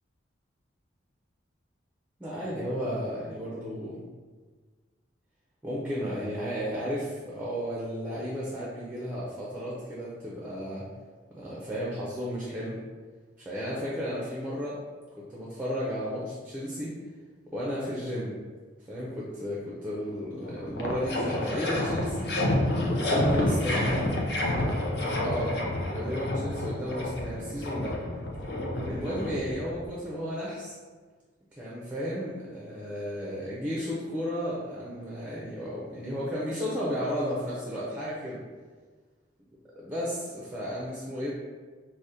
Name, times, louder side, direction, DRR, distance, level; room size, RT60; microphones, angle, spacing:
voice 1, 2.2-4.0 5.6-10.9 11.3-12.8 13.4-14.8 15.2-16.9 17.5-18.4 18.9-22.4 22.8-24.1 25.2-25.5 25.9-28.0 28.9-30.8 31.6-38.4 39.8-41.3, equal, 10° right, -6 dB, 0.5 m, -33 dB
sound 1, 20.1-20.2 20.4-29.9, left 1 dB, 60° left, 0.5 m, -29 dB
4.7 x 2.0 x 2.7 m, 1.5 s
head